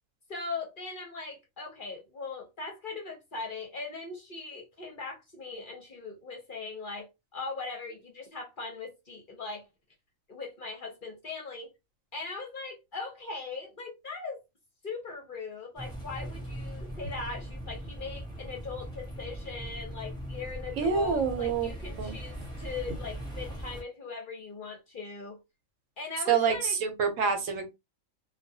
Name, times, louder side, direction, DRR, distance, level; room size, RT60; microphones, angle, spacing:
voice 1, 0.3-7.1 7.3-9.6 10.3-11.7 12.1-14.4 14.8-25.4 26.0-26.8, left 4 dB, 50° left, 0.7 m, -40 dB
sound 1, 15.8-23.8, right 1 dB, 5° left, 0.9 m, -40 dB
voice 2, 20.8-21.7 22.0-22.2 26.3-27.7, right 6 dB, 75° right, 1.1 m, -27 dB
2.3 x 2.3 x 2.6 m
omnidirectional pair, 1.4 m